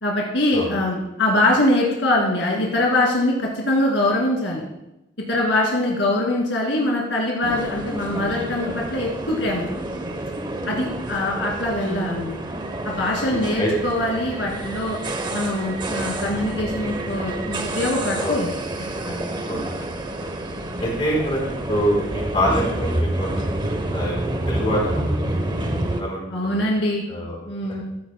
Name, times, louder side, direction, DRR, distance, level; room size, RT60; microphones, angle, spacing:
voice 1, 0.0-4.6 5.3-9.6 10.7-12.4 12.8-15.0 15.3-18.6 19.1-19.3 26.3-27.0 27.5-27.8, left 1 dB, 75° left, -2 dB, 2.4 m, -23 dB
sound 1, 7.4-26.0, right 1 dB, 25° right, 0.8 m, -28 dB
voice 2, 13.3-13.7 18.2-18.4 19.5-19.9 20.2-20.3 20.8-23.3 23.9-24.2 24.5-25.3 25.6-25.7 26.0-26.6 27.1-27.3, equal, 30° left, -2 dB, 3.9 m, -25 dB
15.0 x 13.0 x 2.2 m, 0.89 s
head